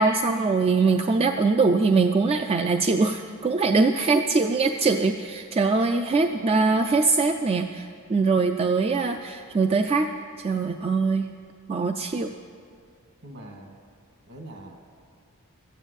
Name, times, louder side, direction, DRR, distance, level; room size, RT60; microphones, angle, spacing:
voice 1, 0.0-10.1 10.4-11.3 11.7-12.3, right 4 dB, 25° right, 6 dB, 0.4 m, -22 dB
voice 2, 13.2-13.7 14.3-14.8, right 1 dB, 55° right, 2 dB, 1.8 m, -42 dB
13.0 x 9.0 x 8.1 m, 2.4 s
head